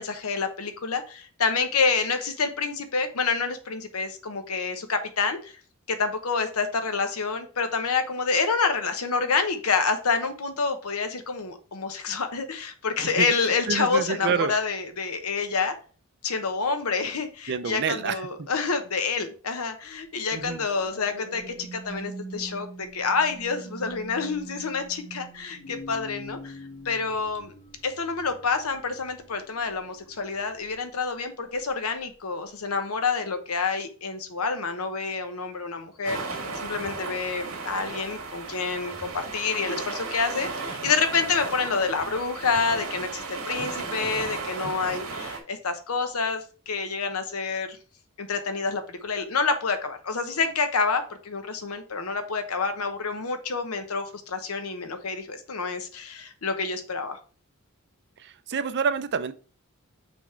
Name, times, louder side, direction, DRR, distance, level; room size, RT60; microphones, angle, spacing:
voice 1, 0.0-5.5 5.9-15.7 16.2-26.6 26.8-27.5 27.8-47.7 48.2-57.2, left 4 dB, 80° left, 8 dB, 0.9 m, -28 dB
voice 2, 13.7-14.5 17.5-18.5 20.3-20.6 58.2-59.3, right 6 dB, 55° right, 12 dB, 0.5 m, -28 dB
sound 1, 20.7-30.9 31.5-31.8, right 1 dB, 60° left, 2.6 m, -43 dB
sound 2, 36.0-45.4, right 4 dB, 85° right, 1.6 m, -35 dB
6.1 x 3.5 x 4.4 m, 0.40 s
head